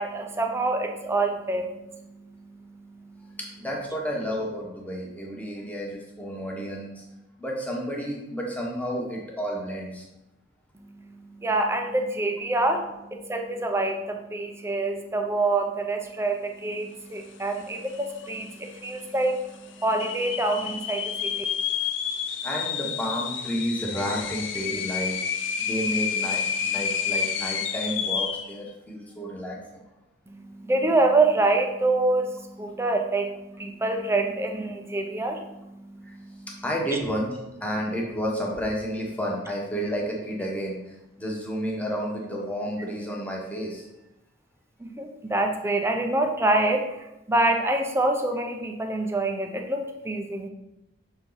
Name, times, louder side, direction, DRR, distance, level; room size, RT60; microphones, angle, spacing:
voice 1, 0.0-3.4 10.7-21.4 30.3-36.6 44.8-50.5, right 2 dB, 15° right, 4 dB, 0.6 m, -26 dB
voice 2, 3.4-7.0 7.4-10.1 22.4-25.2 25.6-29.8 36.0-36.1 36.6-37.3 37.6-43.9, equal, 10° left, -2 dB, 1.1 m, -31 dB
sound 1, 17.6-17.7 17.9-18.5 19.0-19.1 19.8-28.5, left 7 dB, 75° left, 0.6 m, -29 dB
6.5 x 4.5 x 3.9 m, 0.93 s
head